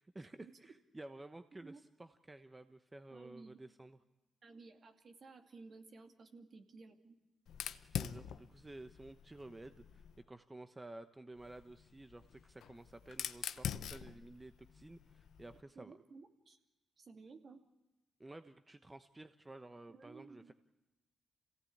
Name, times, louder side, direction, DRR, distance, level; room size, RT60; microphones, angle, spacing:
voice 1, 0.0-4.0 7.8-15.9 18.2-20.5, right 2 dB, 20° right, 9 dB, 1.0 m, -53 dB
voice 2, 3.1-3.6 4.4-7.2 15.7-16.6 17.0-17.6 19.9-20.5, right 4 dB, 55° right, 5 dB, 2.5 m, -56 dB
Fire, 7.5-10.2 11.4-15.6, left 9 dB, 75° left, 0.7 m, -45 dB
27.0 x 17.0 x 8.7 m, 1.0 s
supercardioid pair, 50°, 0 cm